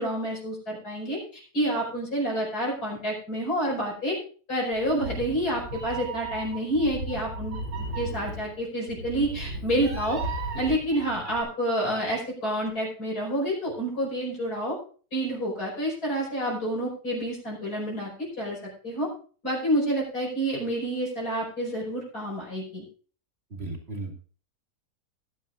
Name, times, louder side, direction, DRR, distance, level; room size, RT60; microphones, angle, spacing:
voice 1, 0.0-4.2 4.5-7.6 8.0-10.2 10.5-14.8 15.1-18.6 18.8-19.1 19.4-22.8, equal, 70° left, -3 dB, 5.5 m, -28 dB
Meow, 4.7-11.4, right 2 dB, 85° right, 4.8 m, -35 dB
voice 2, 23.5-24.2, right 2 dB, 40° right, 1 dB, 2.8 m, -35 dB
19.0 x 10.5 x 2.6 m, 0.41 s
omnidirectional pair, 1.7 m